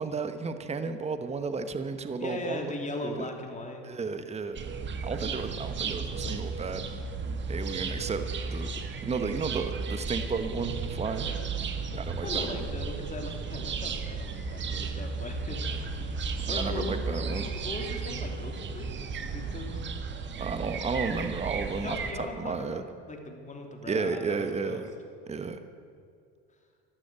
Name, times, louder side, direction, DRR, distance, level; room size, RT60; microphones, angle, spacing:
voice 1, 0.0-2.7 3.0-3.3 3.8-4.6 5.0-6.9 7.5-8.2 8.5-8.7 9.0-11.2 11.9-12.6 16.4-17.5 20.4-22.0 22.4-22.8 23.9-24.8 25.3-25.6, right 4 dB, 20° right, 9 dB, 1.2 m, -33 dB
voice 2, 2.2-4.1 11.2-11.4 12.2-15.9 16.5-18.9 19.3-19.8 21.7-24.8, left 2 dB, 25° left, 3 dB, 3.0 m, -39 dB
sound 1, 4.6-22.1, right 5 dB, 40° right, 1.6 m, -34 dB
13.5 x 12.0 x 8.1 m, 2.3 s
hypercardioid pair, 85°, 30 cm